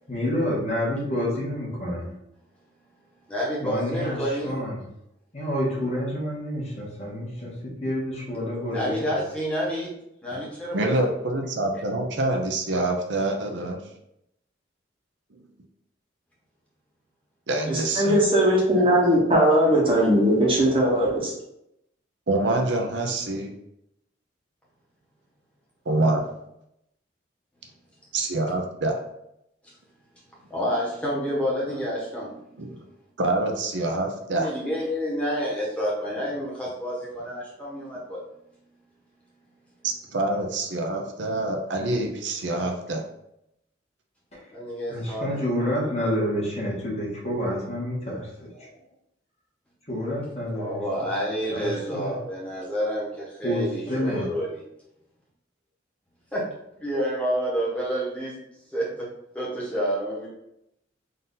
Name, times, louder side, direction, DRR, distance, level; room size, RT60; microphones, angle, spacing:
voice 1, 0.1-2.2 3.6-4.8 5.3-9.1 44.3-44.4 44.9-48.2 49.9-50.8 51.5-52.1 53.4-54.3, equal, 35° left, -5 dB, 1.4 m, -28 dB
voice 2, 3.2-4.5 8.7-9.9 10.2-11.0 18.8-18.9 29.6-29.7 30.5-32.8 34.3-38.2 44.5-45.7 50.5-54.5 56.3-56.4 56.7-58.3 58.7-59.1 59.3-60.3, equal, 5° left, -6 dB, 1.2 m, -29 dB
voice 3, 10.7-13.8 17.5-18.2 22.3-23.5 25.9-26.3 28.1-29.0 32.6-32.8 33.2-34.5 39.8-43.0, right 2 dB, 70° right, 3 dB, 0.6 m, -26 dB
voice 4, 17.7-21.3, equal, 30° right, -3 dB, 0.9 m, -19 dB
3.9 x 2.6 x 3.8 m, 0.80 s
head